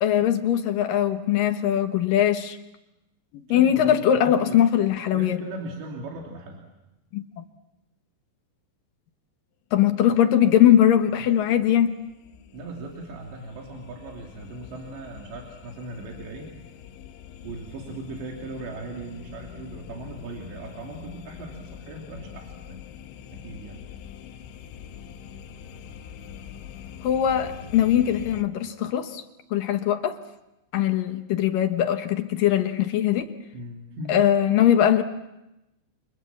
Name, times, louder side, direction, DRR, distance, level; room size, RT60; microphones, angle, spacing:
voice 1, 0.0-2.6 3.5-5.4 7.1-7.3 9.7-12.0 27.0-29.2 29.5-30.2 30.7-33.3 34.1-35.0, left 10 dB, 70° left, 8 dB, 2.3 m, -21 dB
voice 2, 3.5-4.6 5.1-6.6 12.5-16.6 17.4-22.8 23.3-23.8 33.5-34.2, right 2 dB, 75° right, 0 dB, 5.3 m, -38 dB
sound 1, 10.5-28.4, left 8 dB, 85° left, 3.6 m, -44 dB
29.5 x 27.0 x 7.5 m, 0.94 s
omnidirectional pair, 5.2 m